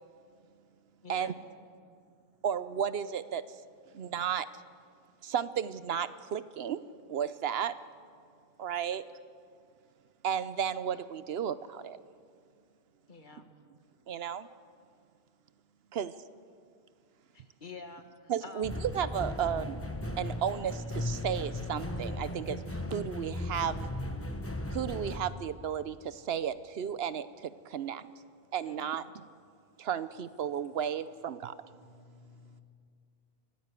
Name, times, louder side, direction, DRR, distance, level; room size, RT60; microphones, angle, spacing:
voice 1, 1.0-1.4 13.1-13.5 17.3-18.8 28.6-29.1, left 4 dB, 50° left, 7 dB, 1.7 m, -48 dB
voice 2, 2.4-3.4 3.9-4.5 5.2-6.8 7.1-7.7 8.6-9.0 10.2-12.0 14.1-14.5 15.9-16.1 18.3-19.8 20.2-22.6 22.9-23.8 24.7-28.1 28.5-29.2 29.8-31.5, right 8 dB, 75° right, 14 dB, 0.9 m, -33 dB
sound 1, 18.6-25.2, left 1 dB, 15° left, 1.1 m, -36 dB
voice 3, 31.8-32.6, left 4 dB, 80° left, 4 dB, 2.2 m, -56 dB
25.0 x 17.0 x 8.2 m, 2.3 s
omnidirectional pair, 1.0 m